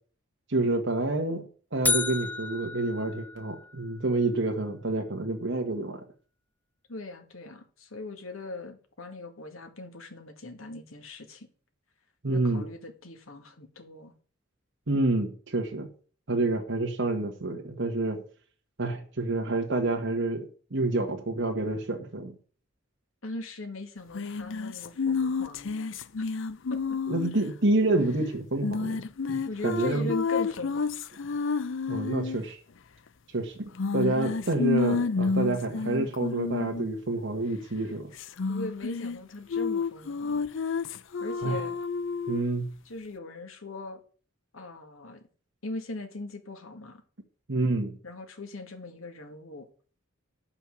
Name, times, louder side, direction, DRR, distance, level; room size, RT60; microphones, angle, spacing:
voice 1, 0.5-6.0 12.2-12.6 14.9-15.9 16.3-18.2 18.8-22.3 27.1-29.0 29.3-30.1 31.9-32.6 33.3-38.1 41.4-41.6 42.3-42.7 47.5-47.9, right 2 dB, 60° right, 1.6 m, -28 dB
sound 1, 1.8-4.0, left 4 dB, 10° left, 0.5 m, -31 dB
voice 2, 6.9-11.5 12.3-14.1 23.2-26.0 26.7-27.0 29.5-31.1 38.5-40.4 41.2-41.8 42.9-44.0 44.5-45.2 45.6-47.0 48.0-49.7, left 2 dB, 80° left, 2.0 m, -40 dB
sound 2, 24.1-27.5 28.6-32.4 33.8-36.9 38.2-39.2 39.5-42.4, left 4 dB, 65° left, 0.6 m, -30 dB
9.9 x 5.9 x 7.1 m
head